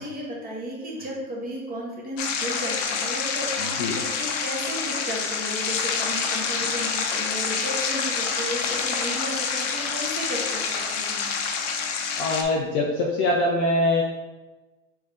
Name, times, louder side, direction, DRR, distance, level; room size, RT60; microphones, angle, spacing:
voice 1, 0.0-11.5, equal, 20° right, -3 dB, 1.2 m, -34 dB
sound 1, 2.2-12.4, left 5 dB, 60° left, 0.7 m, -27 dB
voice 2, 3.6-4.0 12.2-14.0, left 2 dB, 30° left, 0 dB, 0.5 m, -23 dB
3.4 x 3.3 x 3.6 m, 1.2 s
hypercardioid pair, 115°, 41 cm